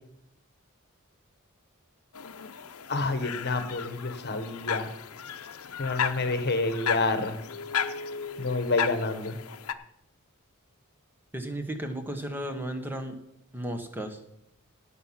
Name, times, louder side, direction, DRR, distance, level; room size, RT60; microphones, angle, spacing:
sound 1, 2.1-9.7, left 7 dB, 85° left, 0.7 m, -35 dB
voice 1, 2.9-4.9 5.8-7.4 8.4-9.4, left 3 dB, 50° left, 9 dB, 1.2 m, -28 dB
voice 2, 11.3-13.2 13.5-14.2, right 1 dB, 10° right, 6 dB, 1.1 m, -34 dB
17.0 x 6.1 x 5.7 m, 0.82 s
head